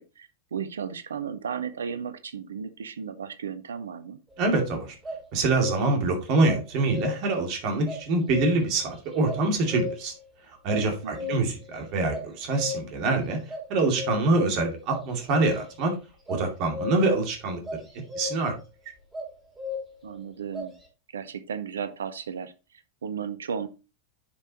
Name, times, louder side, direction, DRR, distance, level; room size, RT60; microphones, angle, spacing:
voice 1, 0.0-4.2 11.0-11.4 20.0-20.7 21.1-22.5 23.0-23.7, right 7 dB, 65° right, 12 dB, 0.8 m, -34 dB
sound 1, 4.3-4.6 5.0-6.0 6.4-7.4 7.8-8.8 9.2-10.2 10.7-11.6 12.1-13.0 13.5-14.4 14.9-15.8 16.3-17.2 17.6-18.5 19.1-20.1 20.5-20.7, left 4 dB, 10° right, 3.5 m, -36 dB
voice 2, 4.4-4.9 5.3-10.1 10.6-13.4 13.7-15.9 16.3-17.6 18.2-18.5, right 3 dB, 40° right, 3 dB, 2.5 m, -25 dB
10.0 x 5.6 x 3.0 m, 0.30 s
figure-of-eight pair, 90°, 0 cm